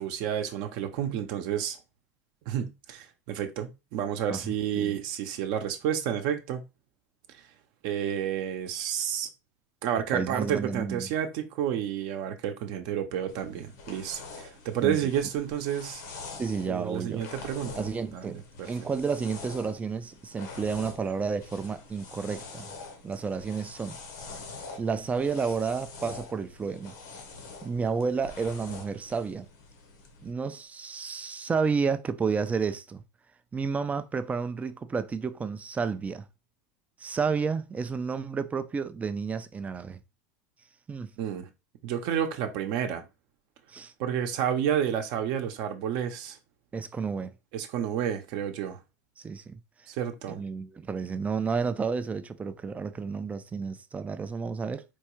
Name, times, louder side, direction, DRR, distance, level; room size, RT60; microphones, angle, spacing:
voice 1, 0.0-1.8 2.5-6.6 7.8-9.3 9.8-16.0 16.7-17.9 18.1-18.4 41.2-41.5 41.8-43.0 44.0-46.4 47.5-48.8 49.9-50.4, right 9 dB, 55° right, 0.7 m, -30 dB
voice 2, 4.3-4.9 10.1-11.1 14.8-15.0 16.4-17.2 17.8-22.7 23.0-24.0 24.8-26.9 27.6-29.5 30.2-33.0 33.5-36.2 37.0-40.0 40.9-41.1 43.7-43.9 46.7-47.3 49.2-49.6 50.3-54.8, right 5 dB, 15° right, 0.4 m, -31 dB
sound 1, 13.3-30.3, left 4 dB, 80° left, 1.1 m, -45 dB
4.5 x 2.3 x 3.0 m
supercardioid pair, 125°, 9 cm